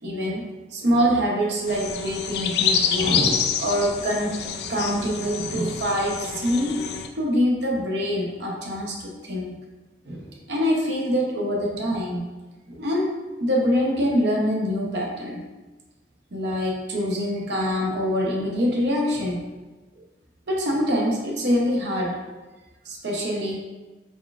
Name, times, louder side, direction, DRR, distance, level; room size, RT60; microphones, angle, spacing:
voice 1, 0.0-4.4 4.7-6.8 7.2-9.6 10.1-12.2 12.7-15.4 16.3-19.4 20.5-22.2 22.8-23.6, equal, 75° right, -2 dB, 0.7 m, -25 dB
sound 1, 1.7-7.1, left 7 dB, 65° left, 0.3 m, -27 dB
4.0 x 3.6 x 2.4 m, 1.2 s
head